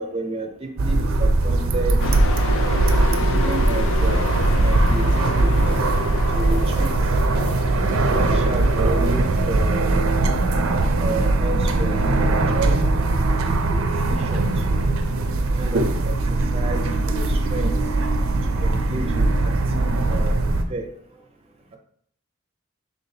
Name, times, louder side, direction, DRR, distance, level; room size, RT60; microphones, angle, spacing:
voice 1, 0.0-2.0 3.0-4.3 4.6-5.6 6.3-6.9 8.1-14.9 15.6-17.8 18.6-20.9, right 2 dB, 25° right, 4 dB, 0.5 m, -32 dB
sound 1, 0.8-20.6, right 2 dB, 70° right, 0.5 m, -20 dB
Truck, 2.0-9.4, left 4 dB, 65° left, 0.4 m, -31 dB
voice 2, 2.5-3.0 7.4-8.6 13.3-14.0, equal, 80° left, -4 dB, 1.5 m, -40 dB
5.6 x 3.4 x 2.8 m, 0.65 s
head